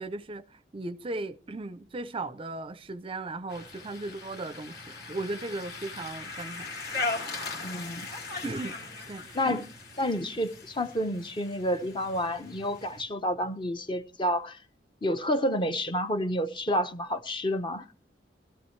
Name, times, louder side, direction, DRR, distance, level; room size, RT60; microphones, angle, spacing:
voice 1, 0.0-6.7 8.4-8.8 9.1-9.6, right 2 dB, 30° right, 0.5 m, -37 dB
sound 1, 3.5-13.0, left 3 dB, 60° left, 2.4 m, -39 dB
voice 2, 7.6-8.1 9.3-9.7 10.0-14.6 15.0-17.9, equal, 25° left, 0.8 m, -29 dB
15.0 x 13.5 x 3.2 m
head